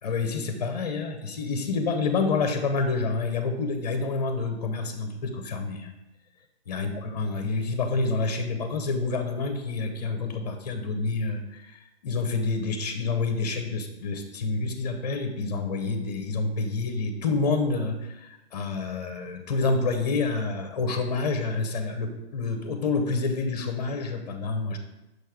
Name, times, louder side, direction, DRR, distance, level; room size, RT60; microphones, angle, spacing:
voice 1, 0.0-5.9 6.7-24.8, left 3 dB, 40° left, 7 dB, 0.8 m, -28 dB
6.4 x 3.3 x 4.8 m, 0.97 s
figure-of-eight pair, 135°, 33 cm